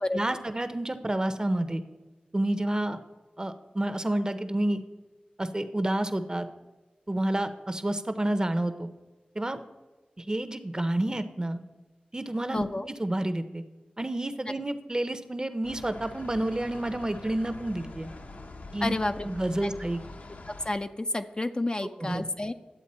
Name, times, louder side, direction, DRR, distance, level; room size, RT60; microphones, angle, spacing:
voice 1, 0.1-1.8 2.3-3.0 3.4-4.8 5.4-6.5 7.1-8.9 9.3-9.6 10.2-11.6 12.1-12.6 13.0-13.6 14.0-18.1 18.7-18.9 19.2-20.0 22.0-22.2, right 1 dB, 25° right, 10 dB, 0.7 m, -29 dB
voice 2, 12.5-12.9 18.8-19.3 19.6-19.7 20.6-22.5, left 2 dB, 30° left, 8 dB, 0.4 m, -30 dB
sound 1, 15.6-20.7, left 2 dB, 60° left, 0.7 m, -44 dB
11.0 x 8.0 x 4.2 m, 1.2 s
wide cardioid pair, 90°, 3 cm